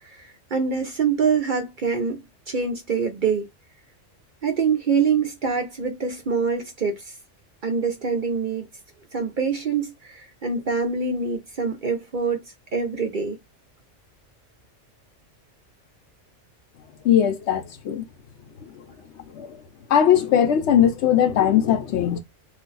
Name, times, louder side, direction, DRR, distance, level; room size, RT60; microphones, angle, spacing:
voice 1, 0.1-2.2 2.5-3.5 4.4-7.1 7.6-8.7 9.1-12.4 12.7-13.4, right 5 dB, 50° right, 0.7 m, -25 dB
voice 2, 17.0-18.1 18.7-18.8 19.3-19.6 19.9-22.2, left 9 dB, 70° left, 0.8 m, -19 dB
2.5 x 2.3 x 3.8 m
omnidirectional pair, 1.3 m